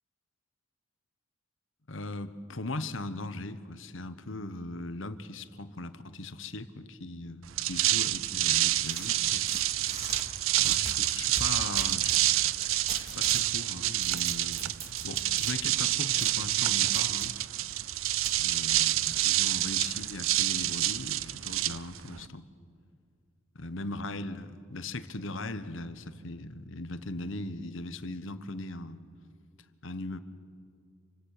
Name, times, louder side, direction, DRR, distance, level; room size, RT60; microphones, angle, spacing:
voice 1, 1.9-9.5 10.6-12.2 13.0-14.7 15.0-17.4 18.3-22.5 23.6-29.0 29.8-30.2, left 2 dB, 65° left, 11 dB, 1.2 m, -39 dB
sound 1, 7.4-22.3, right 14 dB, 75° right, 0.6 m, -28 dB
sound 2, 8.8-10.2 10.6-12.2 12.9-13.5 13.9-15.5 16.2-16.3 16.9-17.3 18.2-18.4, right 3 dB, 30° right, 2.7 m, -41 dB
28.0 x 25.0 x 6.8 m, 2.3 s
head